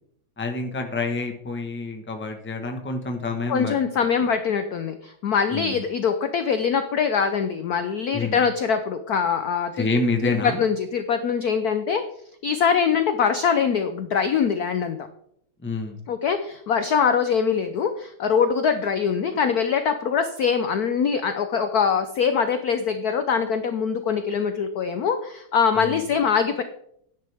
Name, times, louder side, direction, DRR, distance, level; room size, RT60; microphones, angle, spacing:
voice 1, 0.4-3.8 5.5-5.8 8.1-8.4 9.8-10.6 15.6-16.0 25.8-26.0, left 3 dB, 10° left, 3 dB, 0.9 m, -27 dB
voice 2, 3.5-9.9 10.2-12.0 12.4-15.0 16.1-26.6, left 6 dB, 65° left, 8 dB, 0.9 m, -23 dB
11.5 x 10.0 x 3.5 m, 0.71 s
omnidirectional pair, 2.4 m